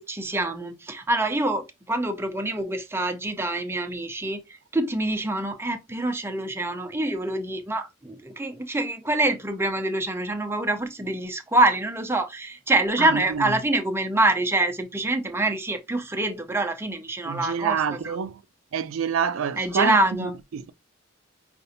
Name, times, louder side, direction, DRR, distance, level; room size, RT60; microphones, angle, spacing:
voice 1, 0.0-4.4 4.7-17.8 18.0-18.2 19.6-20.3, right 2 dB, 10° right, 0.5 m, -25 dB
voice 2, 13.0-13.6 17.2-18.4 18.7-20.7, right 7 dB, 80° right, 0.4 m, -27 dB
5.2 x 2.5 x 2.7 m
head